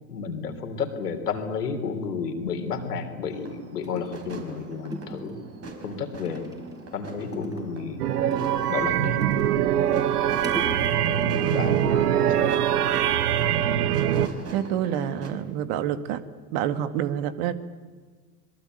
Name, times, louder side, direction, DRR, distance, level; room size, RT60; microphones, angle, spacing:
voice 1, 0.1-5.4 5.8-6.4 6.9-8.0 8.7-9.2 11.0-12.5, left 5 dB, 80° left, 6 dB, 3.6 m, -32 dB
sound 1, 3.3-15.3, right 2 dB, 30° right, 5.0 m, -42 dB
sound 2, 3.8-4.6 4.9-5.7 6.2-7.0 7.3-7.9 8.3-9.7 10.0-11.4 13.0-13.4 13.9-15.0 15.3-15.8, right 1 dB, 10° right, 5.1 m, -39 dB
sound 3, 8.0-14.3, right 10 dB, 75° right, 1.4 m, -23 dB
voice 2, 14.5-16.2 16.5-17.5, right 10 dB, 60° right, 11 dB, 2.1 m, -27 dB
26.0 x 21.5 x 9.1 m, 1.4 s
hypercardioid pair, 80°, 46 cm